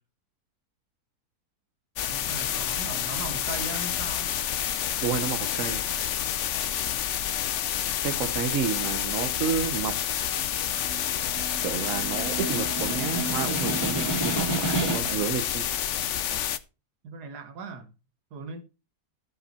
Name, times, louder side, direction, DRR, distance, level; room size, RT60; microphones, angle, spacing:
sound 1, 2.0-16.6, left 10 dB, 60° left, 0.9 m, -29 dB
voice 1, 2.1-4.3 17.0-17.9 18.3-18.6, right 3 dB, 90° right, 1.8 m, -38 dB
voice 2, 5.0-5.8 8.0-10.0 11.6-15.6, right 7 dB, 60° right, 1.3 m, -30 dB
Snare drum, 10.4-15.3, right 2 dB, 15° right, 2.6 m, -32 dB
14.0 x 5.7 x 4.2 m
omnidirectional pair, 1.7 m